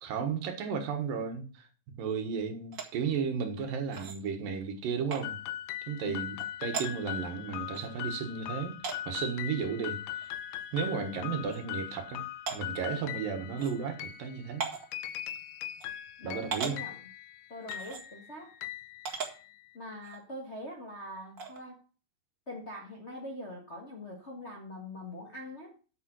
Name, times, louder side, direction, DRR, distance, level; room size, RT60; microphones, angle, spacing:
voice 1, 0.0-1.7 2.0-5.4 5.9-6.4 6.6-8.8 9.1-10.3 10.7-12.2 12.5-14.7 16.2-16.8, right 6 dB, 80° right, 3.2 m, -34 dB
sound 1, 2.7-2.9 3.9-4.2 5.1-5.2 6.4-6.5 6.7-6.9 7.7-7.9 8.8-9.0 10.2-10.3 10.7-10.8 11.5-11.6 12.5-12.6 13.6-13.7 14.6-14.9 15.8-15.9 16.5-16.8 17.7-18.0 19.0-19.3 20.0-20.2 21.4-21.6, right 5 dB, 40° right, 1.9 m, -36 dB
sound 2, 5.2-19.7, left 12 dB, 85° left, 2.3 m, -40 dB
voice 2, 16.2-17.0 17.5-18.5 19.7-21.8 22.5-25.8, left 1 dB, 45° left, 0.8 m, -43 dB
8.7 x 7.0 x 6.3 m
omnidirectional pair, 3.9 m